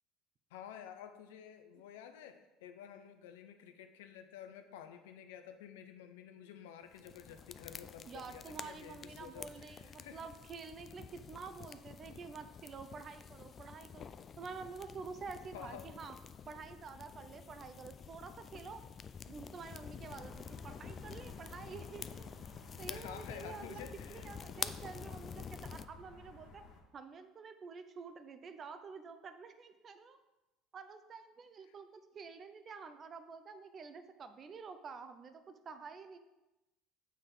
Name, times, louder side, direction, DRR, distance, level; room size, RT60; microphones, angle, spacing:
voice 1, 0.5-10.3 15.5-15.9 22.9-24.6 31.7-31.8, left 9 dB, 90° left, 8 dB, 0.6 m, -51 dB
sound 1, 6.9-25.9, left 6 dB, 40° left, 0.3 m, -48 dB
voice 2, 8.1-14.0 14.4-16.1 16.5-18.8 19.2-20.3 20.6-22.3 22.8-26.6 26.9-30.2 30.7-36.2, right 5 dB, 40° right, 9 dB, 0.6 m, -49 dB
sound 2, 20.0-26.8, left 3 dB, 60° left, 1.1 m, -56 dB
6.5 x 3.4 x 5.5 m, 1.0 s
supercardioid pair, 90°, 0 cm